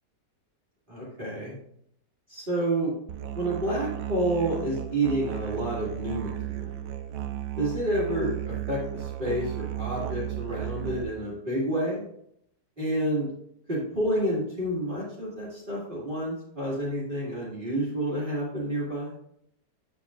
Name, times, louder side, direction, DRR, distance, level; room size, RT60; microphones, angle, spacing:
voice 1, 0.9-1.6 2.3-2.9 3.3-6.7 7.6-12.0 12.8-13.3 13.7-19.1, right 1 dB, 30° right, -7 dB, 2.1 m, -29 dB
Musical instrument, 3.1-11.0, right 13 dB, 70° right, 0.8 m, -34 dB
8.4 x 7.2 x 2.4 m, 0.72 s
omnidirectional pair, 1.9 m